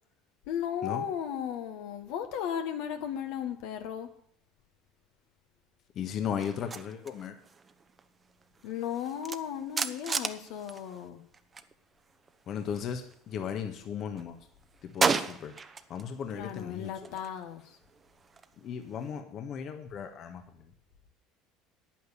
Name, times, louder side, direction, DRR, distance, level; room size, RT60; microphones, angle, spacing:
voice 1, 0.5-4.1 8.6-11.2 16.3-17.6, left 9 dB, 70° left, 6 dB, 1.6 m, -35 dB
voice 2, 5.9-7.3 12.5-14.4 14.8-15.5 15.9-17.2 18.6-20.4, left 8 dB, 50° left, 6 dB, 1.5 m, -36 dB
sound 1, 6.4-11.7 12.0-13.6 14.0-16.1 16.4-19.2, right 5 dB, 30° right, 1.0 m, -36 dB
9.8 x 9.3 x 7.1 m, 0.66 s
hypercardioid pair, 75°, 0 cm